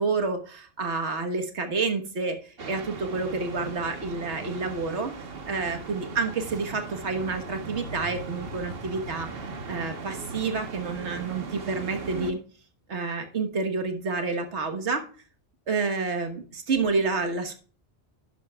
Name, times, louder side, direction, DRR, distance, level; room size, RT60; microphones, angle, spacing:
voice 1, 0.0-5.1 5.5-9.3 9.7-12.4 12.9-15.0 15.7-17.5, right 4 dB, 75° right, 5 dB, 1.6 m, -29 dB
sound 1, 2.6-12.3, right 4 dB, 55° right, 1.3 m, -38 dB
11.0 x 10.5 x 2.3 m, 0.40 s
omnidirectional pair, 1.2 m